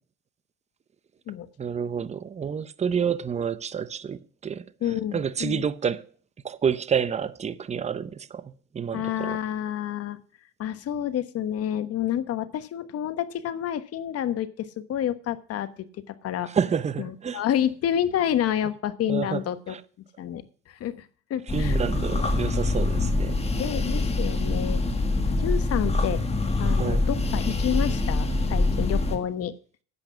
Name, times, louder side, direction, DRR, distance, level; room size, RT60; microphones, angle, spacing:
voice 1, 1.6-4.6 5.1-6.1 6.4-9.4 16.5-17.4 19.1-19.4 19.7-19.8 21.5-23.4 26.8-27.1, right 7 dB, 20° right, 0.7 m, -29 dB
voice 2, 4.8-5.6 8.9-10.2 10.6-16.5 17.0-19.8 20.2-21.8 23.6-24.8 25.4-26.2 26.6-29.5, left 10 dB, 50° left, 1.2 m, -29 dB
sound 1, 21.5-29.2, left 2 dB, 20° left, 1.8 m, -25 dB
10.5 x 8.4 x 5.8 m
cardioid pair, 105°, 30 cm